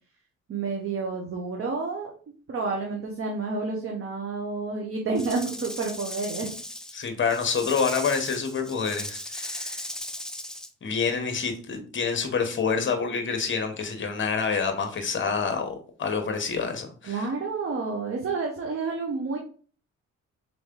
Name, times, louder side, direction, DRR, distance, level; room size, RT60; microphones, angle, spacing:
voice 1, 0.5-2.1 2.5-6.5 17.0-19.4, right 4 dB, 45° right, 1 dB, 0.9 m, -30 dB
Rattle / Rattle (instrument), 5.1-10.7, left 1 dB, ahead, 0.3 m, -37 dB
voice 2, 6.9-9.8 10.8-17.3, left 5 dB, 40° left, 6 dB, 1.1 m, -27 dB
3.7 x 3.2 x 3.7 m, 0.43 s
cardioid pair, 90°, 30 cm